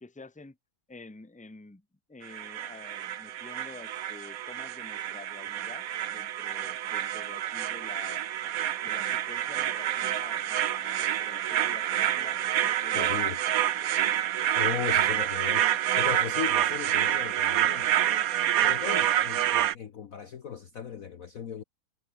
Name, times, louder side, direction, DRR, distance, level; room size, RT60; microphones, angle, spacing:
voice 1, 0.0-0.6 0.9-1.8 2.1-8.3 8.8-13.5 13.8-13.9, left 3 dB, 5° left, 1.2 m, -48 dB
sound 1, 2.2-19.7, right 12 dB, 65° right, 0.9 m, -28 dB
voice 2, 12.9-13.4 14.6-15.6 16.0-17.9 18.6-21.6, left 8 dB, 50° left, 1.2 m, -36 dB
omnidirectional pair, 2.2 m